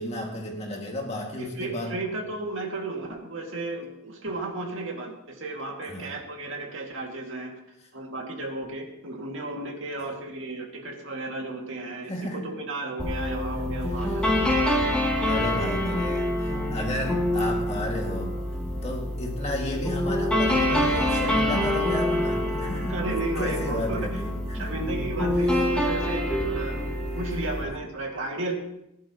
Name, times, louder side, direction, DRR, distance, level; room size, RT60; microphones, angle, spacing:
voice 1, 0.0-2.0 5.9-6.1 12.0-12.5 15.2-18.4 18.8-23.0 23.4-24.7, left 1 dB, 30° left, 0 dB, 2.2 m, -33 dB
voice 2, 1.4-7.5 7.9-14.6 22.9-24.1 24.5-28.5, right 2 dB, 60° right, 1 dB, 2.3 m, -34 dB
sound 1, 13.0-27.6, left 1 dB, 5° left, 2.6 m, -26 dB
19.5 x 11.0 x 3.0 m, 0.86 s
head